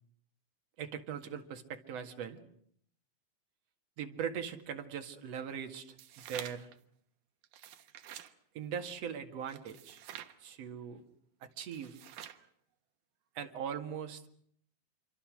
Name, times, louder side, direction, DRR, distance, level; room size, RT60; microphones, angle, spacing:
voice 1, 0.8-2.4 4.0-6.7 8.5-10.0 10.4-11.0 11.4-12.0 13.3-14.2, right 8 dB, 50° right, 5 dB, 2.7 m, -40 dB
sound 1, 5.8-6.8 7.4-8.3 9.5-10.4 11.6-12.5, right 11 dB, 70° right, 2.7 m, -48 dB
28.0 x 24.5 x 6.4 m, 0.67 s
omnidirectional pair, 4.2 m